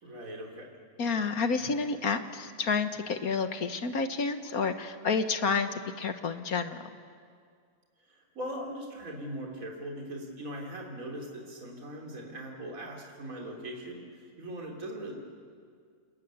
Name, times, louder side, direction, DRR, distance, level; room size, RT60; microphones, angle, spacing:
voice 1, 0.0-0.7 8.0-15.1, right 1 dB, 55° right, 0 dB, 3.8 m, -40 dB
voice 2, 1.0-6.9, left 5 dB, 60° left, 9 dB, 1.7 m, -30 dB
29.0 x 21.5 x 9.4 m, 2.1 s
omnidirectional pair, 1.8 m